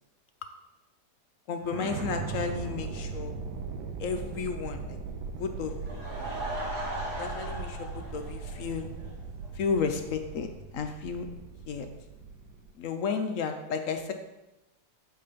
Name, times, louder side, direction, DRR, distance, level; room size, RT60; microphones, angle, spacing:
voice 1, 1.5-3.4 4.0-5.0 5.4-6.0 7.2-8.9 9.5-11.3 11.7-11.9 12.8-14.1, left 5 dB, 65° left, 6 dB, 0.9 m, -33 dB
sound 1, 1.6-12.7, right 4 dB, 90° right, 1.4 m, -39 dB
Laughter / Crowd, 5.6-9.1 9.4-9.5 10.1-10.2 10.3-10.4, right 1 dB, 70° right, 1.8 m, -38 dB
8.0 x 3.8 x 5.1 m, 0.99 s
omnidirectional pair, 1.8 m